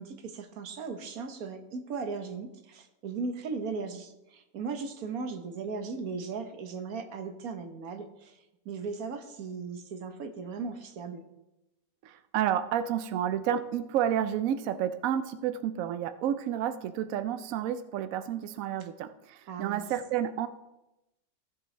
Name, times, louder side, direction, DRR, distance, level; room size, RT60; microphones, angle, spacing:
voice 1, 0.0-8.4 8.6-11.2 19.5-19.8, right 4 dB, 60° right, 6 dB, 1.4 m, -37 dB
voice 2, 12.0-20.5, right 10 dB, 75° right, 10 dB, 0.7 m, -30 dB
16.0 x 7.5 x 3.3 m, 0.93 s
omnidirectional pair, 1.9 m